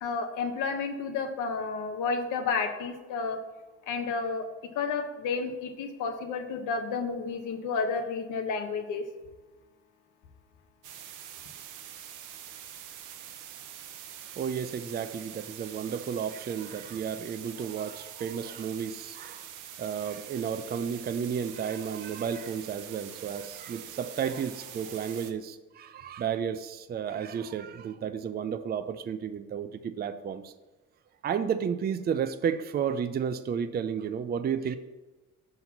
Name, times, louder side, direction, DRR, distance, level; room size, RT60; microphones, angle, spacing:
voice 1, 0.0-3.4 3.9-4.5 4.7-9.1, left 4 dB, 90° left, 0.9 m, -31 dB
sound 1, 10.8-25.3, right 10 dB, 85° right, 0.7 m, -45 dB
voice 2, 14.4-19.5 19.8-30.5 31.2-34.8, right 7 dB, 35° right, 0.4 m, -32 dB
5.8 x 4.0 x 5.8 m
cardioid pair, 90°, 30 cm